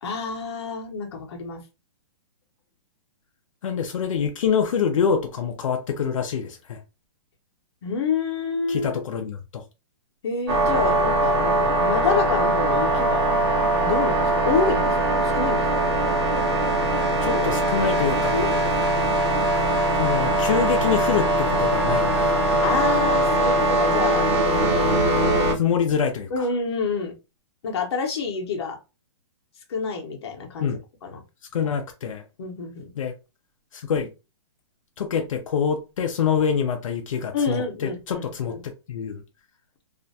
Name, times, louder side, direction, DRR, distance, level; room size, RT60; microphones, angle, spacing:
voice 1, 0.0-1.6 7.8-8.9 10.2-13.2 13.8-15.7 17.3-17.6 18.3-18.7 22.6-24.9 26.3-27.1 27.6-28.8 29.7-31.2 32.4-32.9 37.3-38.6, left 5 dB, 55° left, 0.8 m, -28 dB
voice 2, 3.6-6.8 8.7-9.6 17.2-18.4 20.0-22.3 25.6-26.5 30.6-30.8 31.5-32.2 33.0-33.1 33.7-34.1 35.0-38.5 38.9-39.2, left 7 dB, 85° left, 0.5 m, -25 dB
sound 1, 10.5-25.5, right 1 dB, 50° right, 0.9 m, -21 dB
2.5 x 2.1 x 2.6 m
hypercardioid pair, 175°, 17 cm